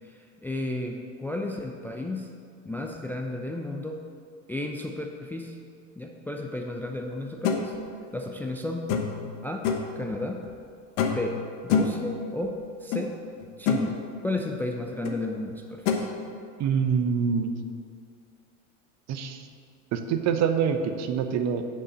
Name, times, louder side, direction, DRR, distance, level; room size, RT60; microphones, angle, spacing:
voice 1, 0.0-2.3 2.6-4.0 4.5-5.6 6.0-7.7 8.1-8.9 9.4-9.7 10.0-10.4 11.1-13.1 13.6-16.1, left 2 dB, 5° left, 1 dB, 0.4 m, -33 dB
sound 1, 7.4-7.6 8.9-9.2 9.6-9.9 11.0-11.3 11.7-12.0 12.9-13.0 13.4-13.9 15.0-15.2 15.9-16.0, left 5 dB, 65° left, 1.1 m, -25 dB
voice 2, 16.6-17.6 19.1-19.4 19.9-21.6, right 6 dB, 45° right, 7 dB, 0.9 m, -25 dB
7.1 x 5.5 x 6.7 m, 2.4 s
hypercardioid pair, 95°, 39 cm